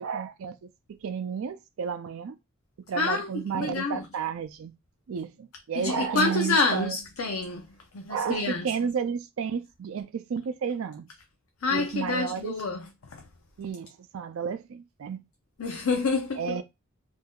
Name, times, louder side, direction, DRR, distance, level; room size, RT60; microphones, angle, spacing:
voice 1, 0.0-2.4 2.9-4.7 5.1-7.0 8.1-11.1 11.7-12.6 13.6-15.2 16.4-16.6, right 6 dB, 85° right, 0.4 m, -32 dB
voice 2, 3.0-3.3 3.6-4.0 5.8-7.7 7.9-8.7 11.6-12.8 13.1-13.2 15.6-16.4, left 4 dB, 90° left, 0.5 m, -27 dB
2.6 x 2.3 x 3.5 m
head